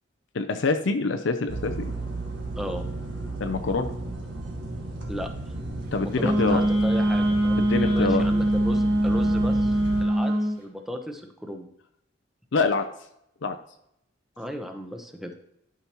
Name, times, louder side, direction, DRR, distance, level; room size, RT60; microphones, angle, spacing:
voice 1, 0.3-1.9 3.4-3.9 5.9-6.6 7.7-8.2 12.5-12.9 13.4-13.6, left 3 dB, 70° left, 6 dB, 0.6 m, -25 dB
sound 1, 1.5-10.0, right 2 dB, 65° right, 1.7 m, -34 dB
voice 2, 6.0-9.8 10.0-11.7 14.4-15.3, equal, ahead, 4 dB, 0.8 m, -35 dB
Wind instrument woodwind instrument, 6.2-10.6, right 1 dB, 50° right, 1.9 m, -22 dB
11.5 x 5.8 x 3.0 m, 0.77 s
head